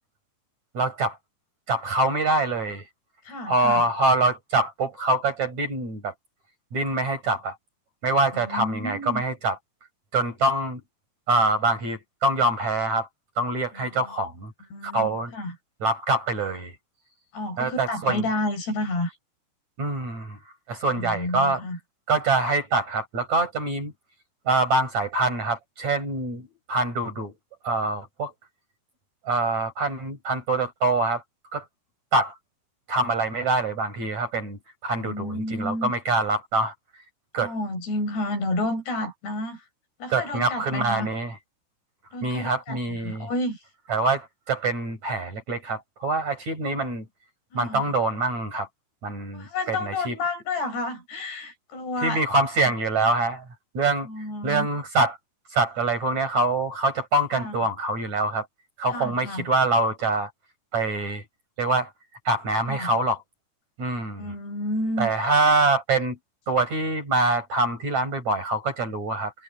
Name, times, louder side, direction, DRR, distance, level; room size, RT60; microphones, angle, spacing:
voice 1, 0.7-1.2 1.7-2.8 3.5-6.1 6.7-7.6 8.0-9.6 10.1-10.8 11.3-13.1 13.4-14.5 14.8-15.3 15.8-16.7 17.6-18.2 19.8-20.4 20.7-21.6 22.1-23.9 24.5-27.3 27.6-28.3 29.3-31.2 31.5-31.6 32.1-32.3 32.9-36.7 37.3-37.5 40.1-41.3 42.2-43.3 43.9-47.0 47.5-48.7 49.0-50.1 52.0-53.4 53.7-54.1 54.4-55.2 55.5-58.5 58.8-60.3 60.7-61.2 61.6-61.9 62.2-63.2 63.8-64.3 65.0-66.2 66.5-69.3, right 2 dB, 35° right, 6.0 m, -25 dB
voice 2, 3.3-3.9 8.3-9.2 13.7-14.1 14.7-15.6 17.3-19.1 20.9-21.8 35.0-35.9 37.4-39.7 40.0-41.1 42.1-43.6 47.5-47.9 49.3-52.2 54.0-54.7 57.3-57.7 58.9-59.5 62.7-62.9 64.2-65.1 65.4-65.5, left 2 dB, 50° left, 9.0 m, -31 dB
omnidirectional pair, 5.9 m